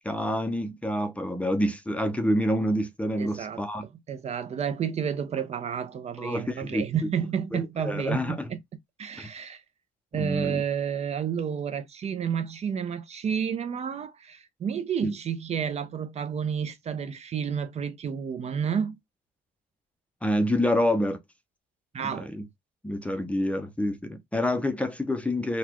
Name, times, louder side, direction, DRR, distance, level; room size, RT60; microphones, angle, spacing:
voice 1, 0.0-3.8 6.2-6.9 7.5-8.5 9.2-9.3 10.1-10.6 15.0-15.1 20.2-21.2 22.0-22.5 22.8-25.6, left 1 dB, 5° left, 0.6 m, -27 dB
voice 2, 3.2-3.6 4.1-8.6 9.0-9.6 10.1-19.0 21.9-22.3, right 7 dB, 40° right, 0.5 m, -30 dB
4.0 x 2.2 x 2.9 m
cardioid pair, 110°, 17 cm